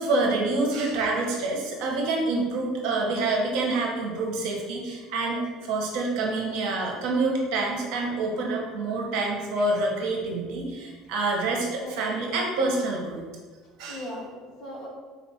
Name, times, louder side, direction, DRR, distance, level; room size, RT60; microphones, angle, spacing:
voice 1, 0.0-13.2 13.8-14.0, right 2 dB, 65° right, 0 dB, 0.8 m, -27 dB
voice 2, 11.8-12.4 13.9-14.9, left 1 dB, 40° left, -5 dB, 1.1 m, -39 dB
4.0 x 2.3 x 4.1 m, 1.4 s
cardioid pair, 175°, 0 cm